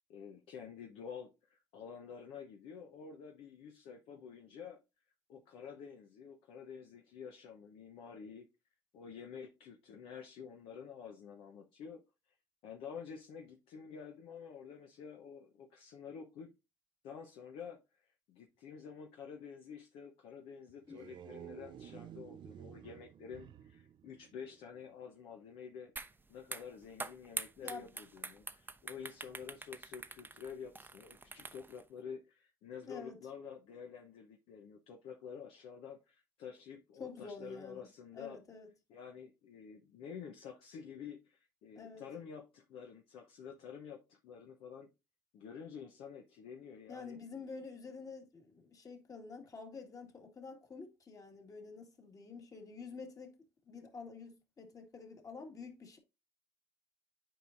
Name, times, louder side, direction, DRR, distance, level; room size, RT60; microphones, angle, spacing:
voice 1, 0.1-4.8 5.3-8.5 8.9-12.0 12.6-16.5 17.0-17.8 18.3-25.9 26.3-38.4 38.9-44.9 45.3-47.2, left 6 dB, 70° left, 0.9 m, -49 dB
sound 1, 20.7-24.9, right 10 dB, 55° right, 0.5 m, -52 dB
sound 2, 26.0-26.1 26.4-31.8, right 3 dB, 20° right, 0.7 m, -45 dB
voice 2, 27.6-27.9 32.9-33.2 37.0-37.9 38.1-38.7 41.8-42.0 46.9-53.4 53.7-56.0, left 4 dB, 35° left, 2.0 m, -48 dB
9.0 x 4.8 x 2.6 m
hypercardioid pair, 60°, 10 cm